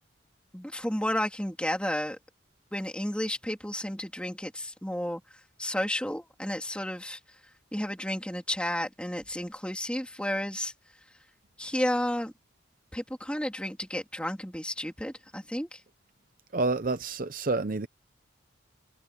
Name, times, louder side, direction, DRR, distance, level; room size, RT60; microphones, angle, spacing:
voice 1, 0.5-2.2 2.7-5.2 5.6-7.2 7.7-10.7 11.6-12.3 12.9-15.8, left 1 dB, 5° left, 3.4 m, -32 dB
voice 2, 16.5-17.9, right 3 dB, 45° right, 0.7 m, -28 dB
head